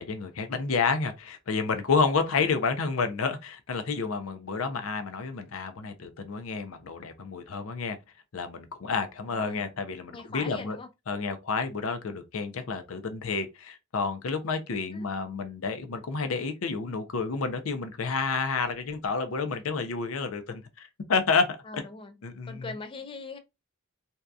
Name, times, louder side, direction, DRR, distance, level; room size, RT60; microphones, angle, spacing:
voice 1, 0.0-8.0 8.3-10.8 11.1-21.8 22.2-22.6, left 4 dB, 85° left, 0.5 m, -30 dB
voice 2, 9.3-9.7 10.1-10.9 14.9-15.1 21.6-22.1 22.5-23.4, left 3 dB, 25° left, 0.4 m, -41 dB
2.7 x 2.2 x 2.4 m
head